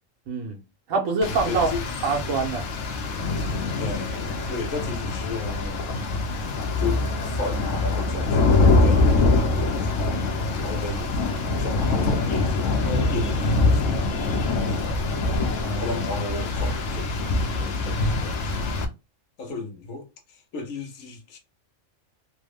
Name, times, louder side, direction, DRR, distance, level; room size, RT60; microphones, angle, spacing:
voice 1, 0.3-0.6 0.9-1.7 2.0-2.7 15.5-15.8, right 4 dB, 80° right, 1.2 m, -25 dB
Rain, 1.2-18.9, left 3 dB, 75° left, 1.0 m, -24 dB
voice 2, 1.5-1.8 3.3-5.9 6.8-10.1 10.6-11.1 11.5-15.0 15.8-17.1 17.4-18.9 19.4-21.4, left 3 dB, 90° left, 1.1 m, -35 dB
3.1 x 2.0 x 3.4 m
omnidirectional pair, 1.4 m